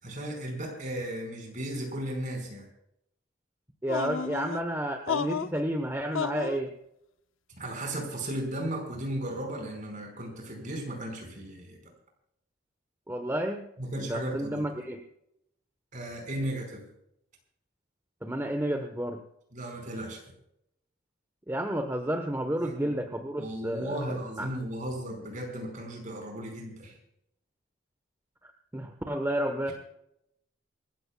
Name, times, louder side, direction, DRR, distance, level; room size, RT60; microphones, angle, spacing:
voice 1, 0.0-2.7 7.6-11.9 13.8-14.7 15.9-16.9 19.5-20.2 22.6-23.0 23.4-27.0, right 1 dB, 40° right, 2 dB, 5.0 m, -35 dB
voice 2, 3.8-6.7 13.1-13.7 14.0-15.0 18.2-19.2 21.5-24.0 24.4-24.5 28.4-29.7, right 1 dB, 10° right, 5 dB, 1.1 m, -31 dB
sound 1, 3.9-4.6 5.1-5.6 6.1-6.6, left 6 dB, 80° left, 0.6 m, -31 dB
27.0 x 14.0 x 2.3 m, 0.79 s
head